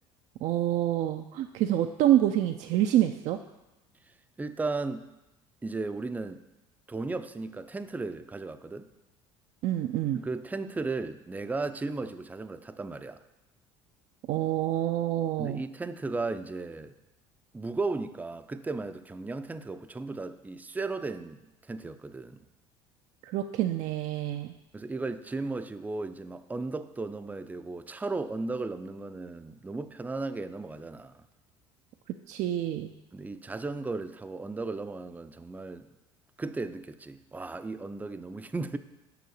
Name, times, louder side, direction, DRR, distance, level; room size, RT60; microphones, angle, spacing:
voice 1, 0.4-3.4 9.6-10.2 14.3-15.6 23.2-24.5 32.3-32.9, right 12 dB, 60° right, 6 dB, 0.5 m, -27 dB
voice 2, 4.4-5.1 5.6-6.4 6.9-8.9 10.1-13.2 15.4-16.9 17.5-22.4 24.7-31.2 33.1-35.9 36.4-38.8, right 3 dB, 10° right, 10 dB, 0.5 m, -35 dB
6.8 x 5.7 x 6.4 m, 0.98 s
supercardioid pair, 85°, 13 cm